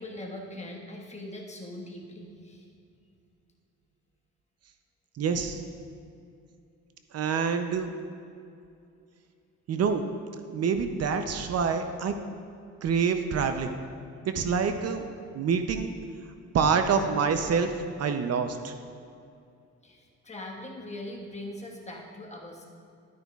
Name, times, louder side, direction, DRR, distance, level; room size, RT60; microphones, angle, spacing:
voice 1, 0.0-2.7 19.8-22.6, left 1 dB, 25° left, -1 dB, 1.4 m, -41 dB
voice 2, 5.2-5.6 7.1-7.9 9.7-10.1 10.5-12.2 12.8-13.7 14.2-15.0 15.3-15.9 16.5-18.7, right 6 dB, 55° right, 7 dB, 0.6 m, -26 dB
12.0 x 9.2 x 2.4 m, 2.5 s
cardioid pair, 90°, 30 cm